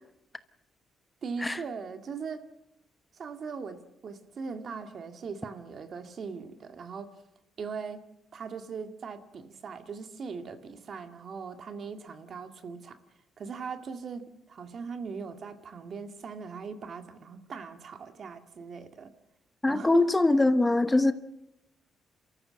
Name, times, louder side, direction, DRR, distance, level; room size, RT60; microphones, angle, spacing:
voice 1, 1.2-2.4 3.2-7.2 7.6-8.0 8.3-13.0 13.4-19.1 19.7-20.1, right 5 dB, 55° right, 8 dB, 2.0 m, -40 dB
voice 2, 19.6-21.1, left 2 dB, 15° left, 12 dB, 1.0 m, -22 dB
27.5 x 14.0 x 7.7 m, 0.85 s
cardioid pair, 90°, 0 cm